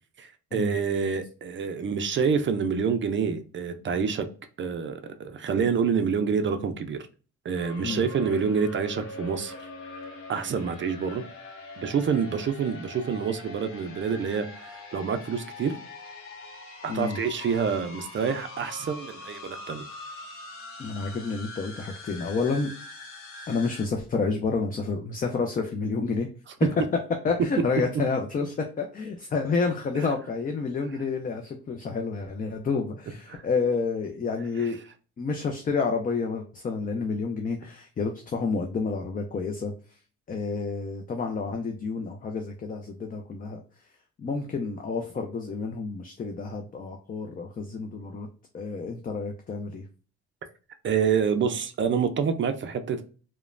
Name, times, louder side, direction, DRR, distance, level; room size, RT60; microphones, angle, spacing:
voice 1, 0.2-4.3 4.6-7.0 7.4-9.5 10.3-11.2 11.8-15.8 16.8-19.8 33.3-33.4 34.6-34.7 50.8-53.0, right 6 dB, 40° right, 0.4 m, -27 dB
sound 1, 7.5-23.9, left 2 dB, 45° left, 0.9 m, -43 dB
voice 2, 16.9-17.2 20.8-22.8 23.5-26.3 27.2-34.8 35.2-39.7 40.3-43.6 44.2-48.3 48.5-49.8, left 4 dB, 30° left, 0.4 m, -29 dB
2.9 x 2.1 x 2.4 m
cardioid pair, 90°, 30 cm